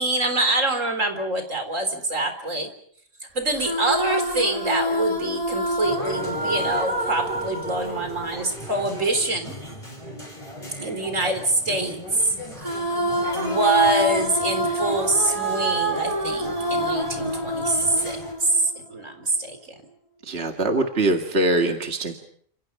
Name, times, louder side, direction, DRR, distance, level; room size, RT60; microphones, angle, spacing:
voice 1, 0.0-2.7 3.3-9.6 10.8-12.3 13.3-19.7, right 2 dB, 80° right, 7 dB, 4.4 m, -25 dB
sound 1, 3.5-9.1 12.6-19.0, equal, 25° right, 3.2 m, -27 dB
sound 2, 5.8-18.3, left 1 dB, 25° left, 6.1 m, -38 dB
voice 2, 20.2-22.1, right 2 dB, 55° right, 4 dB, 2.3 m, -23 dB
29.5 x 28.0 x 5.6 m, 0.63 s
omnidirectional pair, 1.3 m